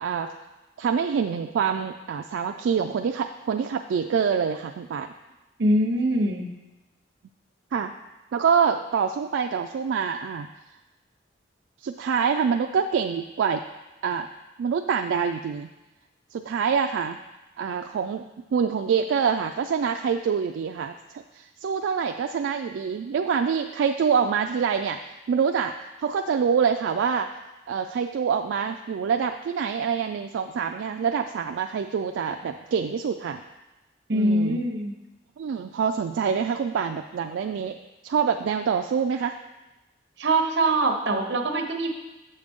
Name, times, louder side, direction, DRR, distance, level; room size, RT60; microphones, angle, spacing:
voice 1, 0.0-0.3 0.8-5.1 7.7-7.9 8.3-10.5 11.8-13.6 14.0-14.3 14.6-15.7 16.3-17.2 17.6-18.2 18.5-25.0 25.3-27.3 27.7-33.4 34.1-34.6 35.4-37.8 38.0-39.4, right 6 dB, 90° right, 5 dB, 0.3 m, -26 dB
voice 2, 5.6-6.5 34.1-34.9 40.2-41.9, right 1 dB, 70° right, 4 dB, 0.8 m, -23 dB
7.4 x 6.5 x 3.5 m, 1.1 s
head